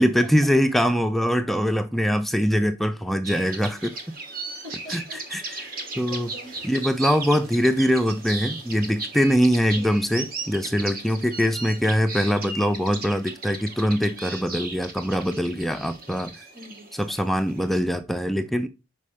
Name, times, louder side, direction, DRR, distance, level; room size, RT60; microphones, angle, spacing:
voice 1, 0.0-3.9 4.9-5.0 5.3-5.4 6.0-6.3 6.6-16.3 17.0-18.7, equal, ahead, 0.4 m, -23 dB
sound 1, 3.2-17.8, right 3 dB, 45° right, 1.2 m, -36 dB
voice 2, 4.5-5.3 5.6-6.7 9.8-9.9 16.5-16.9, right 1 dB, 75° right, 3.5 m, -44 dB
5.5 x 5.2 x 4.9 m
head